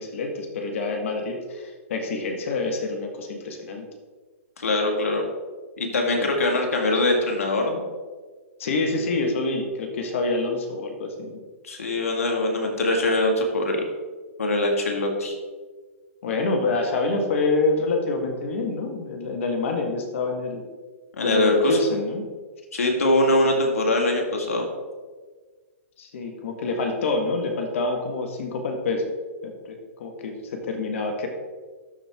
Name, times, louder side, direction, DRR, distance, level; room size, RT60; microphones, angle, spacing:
voice 1, 0.0-3.9 6.1-6.3 8.6-11.4 16.2-20.6 21.2-22.3 26.0-29.1 29.4-31.3, left 3 dB, 65° left, 3 dB, 1.5 m, -27 dB
voice 2, 4.6-5.2 5.8-7.8 11.6-13.9 14.4-15.4 21.2-21.8 22.7-24.6, left 1 dB, 90° left, 1 dB, 1.9 m, -22 dB
12.5 x 4.5 x 3.5 m, 1.4 s
hypercardioid pair, 140°, 8 cm